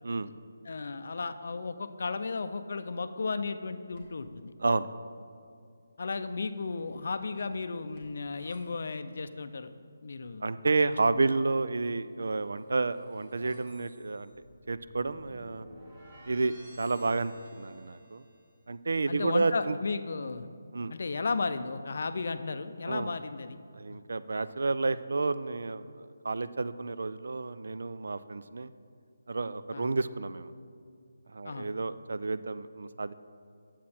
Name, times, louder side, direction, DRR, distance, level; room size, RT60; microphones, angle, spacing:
voice 1, 0.7-4.5 6.0-9.7 10.0-10.5 10.8-11.3 19.1-20.5 20.9-23.6 23.9-24.0 29.7-29.9 31.4-31.7, left 4 dB, 55° left, 10 dB, 0.5 m, -34 dB
sound 1, 3.9-4.3 6.2-8.6 12.1-18.5, right 1 dB, 25° right, 1.5 m, -55 dB
voice 2, 10.4-14.3 14.7-15.7 16.3-18.2 18.7-19.8 20.7-20.9 22.9-23.1 23.7-28.7 29.3-30.5 31.3-33.1, right 3 dB, 70° right, 14 dB, 0.4 m, -30 dB
8.6 x 7.4 x 4.3 m, 2.3 s
hypercardioid pair, 170°, 0 cm